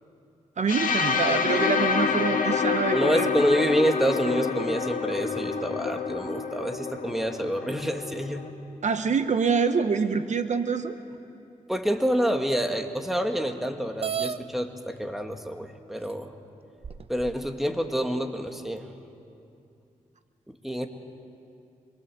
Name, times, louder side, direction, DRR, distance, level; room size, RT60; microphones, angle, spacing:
voice 1, 0.6-3.3 8.8-11.0, right 5 dB, 65° right, 9 dB, 1.0 m, -25 dB
sound 1, 0.7-8.5, left 5 dB, 90° left, 1.8 m, -27 dB
voice 2, 2.9-8.4 11.7-16.3 17.1-18.9 20.5-20.9, equal, ahead, 5 dB, 1.9 m, -27 dB
sound 2, 14.0-14.4 15.4-15.5 16.1-16.2 16.8-17.5, right 8 dB, 45° right, 0.7 m, -32 dB
26.0 x 23.0 x 7.9 m, 2.6 s
cardioid pair, 85°, 13 cm